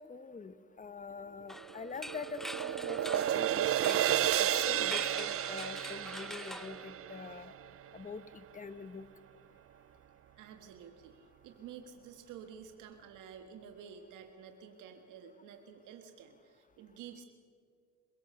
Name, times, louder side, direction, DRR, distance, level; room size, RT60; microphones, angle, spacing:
voice 1, 0.0-4.0 4.4-7.5 7.9-9.1, left 5 dB, 25° left, 12 dB, 1.2 m, -45 dB
sound 1, 1.5-7.5, equal, ahead, 0.6 m, -45 dB
sound 2, 1.6-7.9, right 11 dB, 50° right, 0.5 m, -32 dB
voice 2, 10.4-17.2, right 7 dB, 90° right, 6 dB, 1.6 m, -51 dB
27.0 x 17.0 x 6.7 m, 2.1 s
cardioid pair, 90°, 30 cm